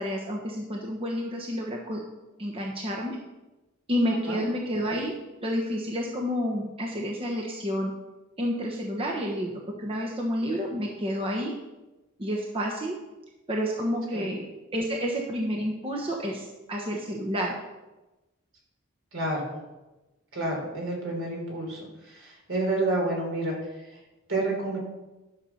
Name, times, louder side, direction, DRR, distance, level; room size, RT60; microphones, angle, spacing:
voice 1, 0.0-2.0 2.4-3.2 3.9-5.1 5.4-7.9 8.4-11.5 12.2-12.9 13.5-14.4 14.7-17.5, equal, 25° right, -1 dB, 1.1 m, -29 dB
voice 2, 19.1-19.5 20.3-23.5 24.3-24.8, right 2 dB, 65° right, 0 dB, 3.6 m, -29 dB
11.5 x 6.7 x 5.7 m, 1.1 s
head